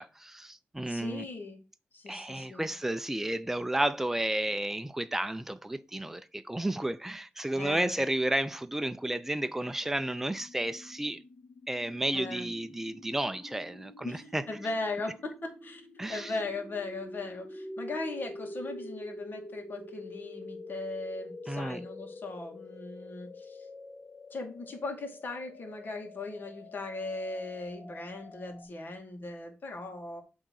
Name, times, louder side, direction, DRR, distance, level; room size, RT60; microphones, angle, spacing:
voice 1, 0.0-1.2 2.1-11.2 11.7-14.5 16.0-16.3 21.5-21.8, right 1 dB, 10° right, 0.6 m, -32 dB
voice 2, 0.9-1.6 1.9-2.7 7.5-8.0 12.1-12.5 14.0-23.6 24.3-30.2, left 3 dB, 55° left, 2.4 m, -38 dB
Sci fi Charge, 9.7-28.7, left 1 dB, 35° left, 2.5 m, -46 dB
8.0 x 4.0 x 6.4 m
wide cardioid pair, 95°, 4 cm